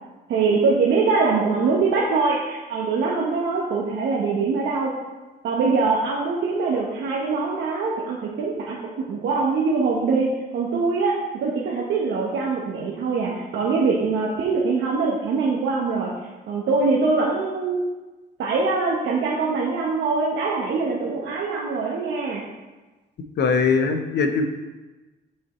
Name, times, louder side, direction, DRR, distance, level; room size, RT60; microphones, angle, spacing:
voice 1, 0.3-4.9 5.4-16.1 16.5-17.8 18.4-22.4, right 4 dB, 85° right, -3 dB, 1.0 m, -23 dB
voice 2, 23.4-24.5, left 5 dB, 65° left, 6 dB, 0.9 m, -21 dB
7.3 x 6.2 x 3.1 m, 1.2 s
cardioid pair, 85°, 19 cm